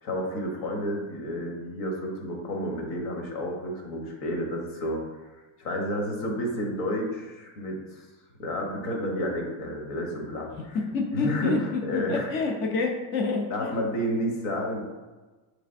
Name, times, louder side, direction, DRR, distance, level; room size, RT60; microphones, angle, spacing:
voice 1, 0.0-5.0 5.3-8.1 8.4-10.8 11.1-12.3 13.5-14.8, equal, 60° left, 1 dB, 1.0 m, -31 dB
voice 2, 10.7-13.8, left 4 dB, 30° left, 2 dB, 0.4 m, -28 dB
4.8 x 3.2 x 2.5 m, 1.2 s
cardioid pair, 160°, 41 cm